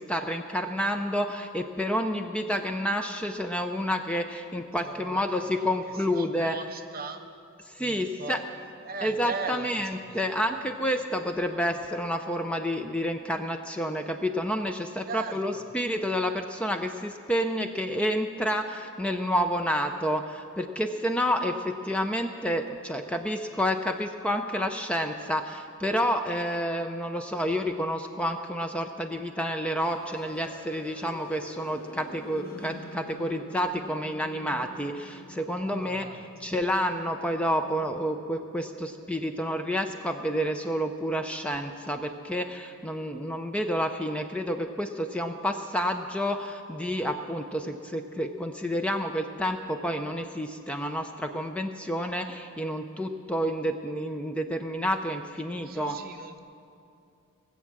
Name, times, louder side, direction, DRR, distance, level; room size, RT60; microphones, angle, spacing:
voice 1, 0.0-6.6 7.7-8.4 9.0-56.0, equal, 5° left, 5 dB, 0.5 m, -29 dB
voice 2, 4.8-5.7 6.4-7.2 7.8-8.4 8.8-10.6 15.1-15.7 35.7-36.2 55.5-56.4, right 4 dB, 45° right, 6 dB, 0.8 m, -39 dB
sound 1, 29.7-41.6, left 2 dB, 45° left, 1.2 m, -48 dB
18.5 x 7.6 x 7.3 m, 2.6 s
head